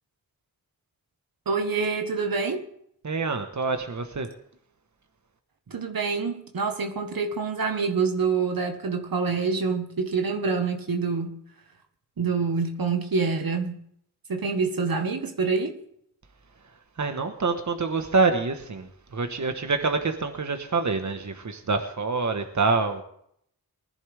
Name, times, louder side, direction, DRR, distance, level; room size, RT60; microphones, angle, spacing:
voice 1, 1.4-2.7 5.7-11.4 12.2-13.8 14.3-15.8, right 4 dB, 75° right, 1.5 m, -26 dB
voice 2, 3.0-4.3 17.0-23.0, right 4 dB, 55° right, 1.4 m, -26 dB
20.0 x 10.5 x 3.5 m
cardioid pair, 55°, 35 cm